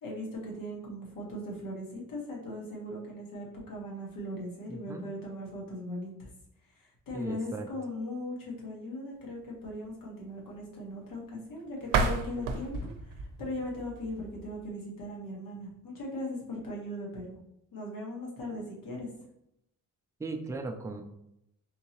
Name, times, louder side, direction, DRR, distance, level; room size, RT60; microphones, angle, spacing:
voice 1, 0.0-6.3 6.8-17.4 17.7-19.1, left 1 dB, 80° left, -3 dB, 1.3 m, -39 dB
voice 2, 4.7-5.1 7.1-7.7 20.2-21.0, right 3 dB, 10° right, 4 dB, 0.3 m, -37 dB
sound 1, 11.8-14.7, right 4 dB, 85° right, 0.6 m, -32 dB
3.7 x 2.8 x 2.9 m, 0.80 s
cardioid pair, 125°, 33 cm